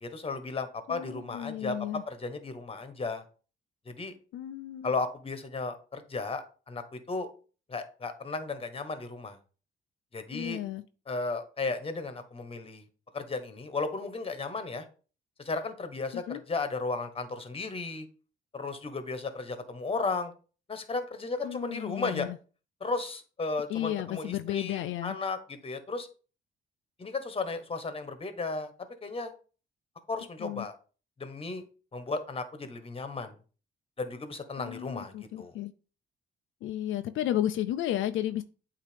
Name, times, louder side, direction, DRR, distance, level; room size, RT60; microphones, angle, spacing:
voice 1, 0.0-3.2 3.8-4.1 4.8-7.3 7.7-9.4 10.1-10.6 11.1-12.8 13.1-14.9 15.4-18.1 18.5-20.3 20.7-22.3 22.8-26.1 27.0-28.7 29.0-29.3 30.1-30.8 31.2-31.6 31.9-33.3 34.0-35.5, left 3 dB, 30° left, 1.2 m, -35 dB
voice 2, 0.9-2.0 4.3-4.9 10.3-10.8 16.3-16.4 21.4-22.4 23.7-25.2 30.4-30.7 34.6-35.7 36.6-38.4, left 12 dB, 80° left, 0.5 m, -33 dB
8.2 x 2.9 x 5.1 m
cardioid pair, 90°, 20 cm